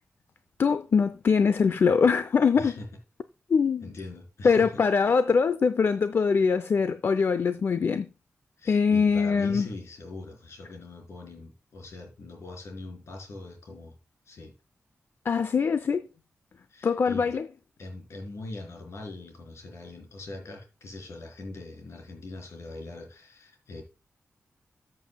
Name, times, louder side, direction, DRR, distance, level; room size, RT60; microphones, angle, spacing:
voice 1, 0.6-2.7 3.5-3.9 4.4-8.1 8.7-9.7 15.3-16.0 16.8-17.5, left 5 dB, 55° left, 0.5 m, -23 dB
voice 2, 2.5-2.9 3.8-4.8 8.6-14.0 14.3-14.5 16.7-17.3 17.8-23.8, left 2 dB, 75° left, 4.1 m, -42 dB
14.0 x 7.6 x 2.3 m
wide cardioid pair, 110°, 5 cm